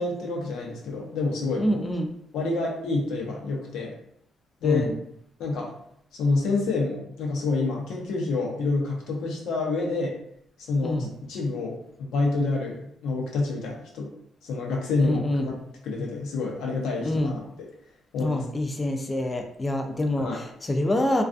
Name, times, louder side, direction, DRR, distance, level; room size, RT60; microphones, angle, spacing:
voice 1, 0.0-1.8 2.3-3.9 4.6-4.9 5.4-5.7 6.1-10.2 10.6-14.1 14.4-15.5 15.8-17.4 18.1-18.4 20.2-20.4, left 3 dB, 85° left, -1 dB, 0.7 m, -28 dB
voice 2, 1.5-2.1 4.6-4.9 10.8-11.1 15.0-15.6 17.0-17.4 18.2-21.2, left 1 dB, 25° left, 4 dB, 0.4 m, -26 dB
2.3 x 2.3 x 2.5 m, 0.72 s
cardioid pair, 90°, 0 cm